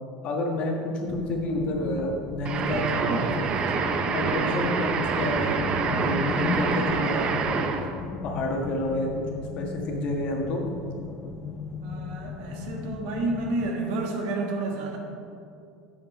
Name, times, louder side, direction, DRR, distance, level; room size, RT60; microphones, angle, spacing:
voice 1, 0.2-3.5 4.1-7.7 8.2-9.2 9.5-10.6, left 1 dB, 55° left, 1 dB, 1.5 m, -29 dB
sound 1, 1.1-13.7, left 4 dB, 35° left, 0.5 m, -36 dB
sound 2, 2.5-8.0, right 5 dB, 40° right, 0.7 m, -26 dB
voice 2, 11.8-15.0, right 2 dB, 70° right, 1 dB, 1.4 m, -30 dB
7.1 x 6.1 x 4.9 m, 2.4 s
supercardioid pair, 95°, 2 cm